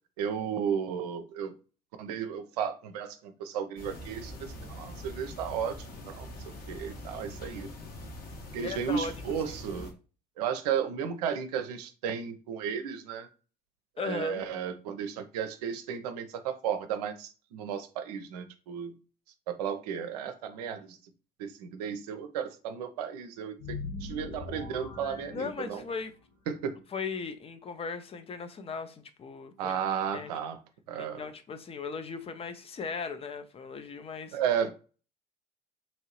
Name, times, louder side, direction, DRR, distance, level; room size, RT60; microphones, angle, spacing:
voice 1, 0.2-1.5 2.0-4.4 4.7-5.8 6.0-7.7 8.5-9.9 10.4-13.3 14.0-18.9 19.5-21.0 21.4-25.8 26.5-26.8 29.6-30.6 30.9-31.3 34.3-34.7, right 8 dB, 70° right, 0.5 m, -34 dB
sound 1, 3.8-9.9, left 1 dB, 45° left, 1.0 m, -43 dB
voice 2, 8.6-9.3 14.0-14.5 25.3-26.1 26.9-29.8 30.1-30.3 31.0-34.4, left 5 dB, 30° left, 0.5 m, -37 dB
sound 2, 23.6-26.1, left 3 dB, 80° left, 1.7 m, -41 dB
2.9 x 2.7 x 2.9 m
figure-of-eight pair, 60°, 21 cm